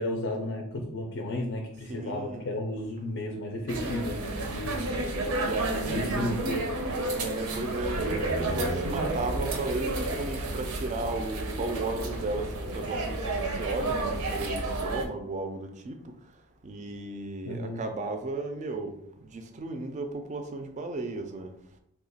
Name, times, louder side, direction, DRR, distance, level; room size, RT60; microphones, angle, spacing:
voice 1, 0.0-4.9 5.9-6.9 17.4-17.9, left 1 dB, 55° left, 2 dB, 0.4 m, -33 dB
voice 2, 1.9-2.5 5.4-6.5 7.2-16.0 16.6-19.0 19.2-21.5, right 2 dB, 35° right, 6 dB, 0.3 m, -35 dB
sound 1, 3.7-15.0, right 2 dB, 85° right, 0.6 m, -31 dB
2.8 x 2.2 x 4.0 m, 0.76 s
head